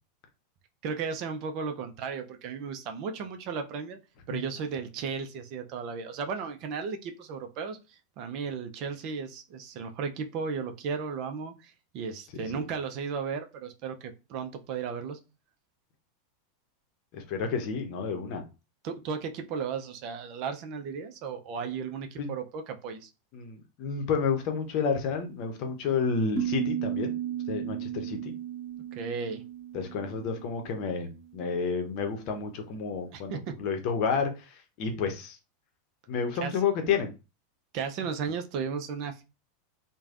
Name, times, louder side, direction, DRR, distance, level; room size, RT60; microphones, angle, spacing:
voice 1, 0.8-4.0 4.3-15.2 18.8-23.1 28.9-29.4 33.1-33.5 36.4-36.6 37.7-39.2, right 5 dB, 50° right, 5 dB, 0.5 m, -35 dB
voice 2, 12.3-12.6 17.1-18.4 22.2-22.3 23.3-27.2 27.5-28.3 29.7-34.5 34.8-35.4 36.1-37.1, left 5 dB, 50° left, 5 dB, 0.7 m, -30 dB
sound 1, 26.4-31.2, right 11 dB, 15° right, 1.1 m, -35 dB
3.2 x 2.2 x 2.5 m, 0.28 s
hypercardioid pair, 90°, 0 cm